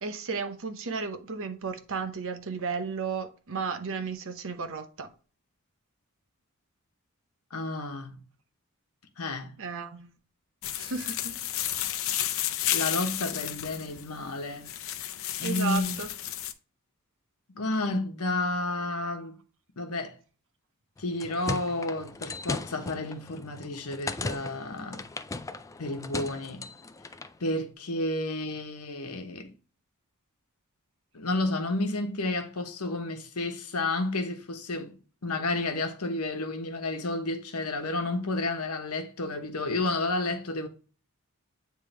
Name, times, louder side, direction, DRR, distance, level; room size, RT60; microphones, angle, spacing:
voice 1, 0.0-5.1 9.6-10.1 10.8-11.4 12.2-12.4 15.4-16.1, right 5 dB, 65° right, 0.9 m, -34 dB
voice 2, 7.5-8.2 9.2-9.5 12.7-14.7 15.4-16.0 17.5-19.4 19.8-20.1 21.0-25.0 25.8-26.7 27.4-29.5 31.1-35.0 35.2-40.7, left 2 dB, 85° left, 1.1 m, -31 dB
sound 1, 10.6-16.5, left 12 dB, 65° left, 0.6 m, -32 dB
sound 2, 21.0-27.4, left 3 dB, 15° left, 0.3 m, -37 dB
8.9 x 3.3 x 3.3 m
head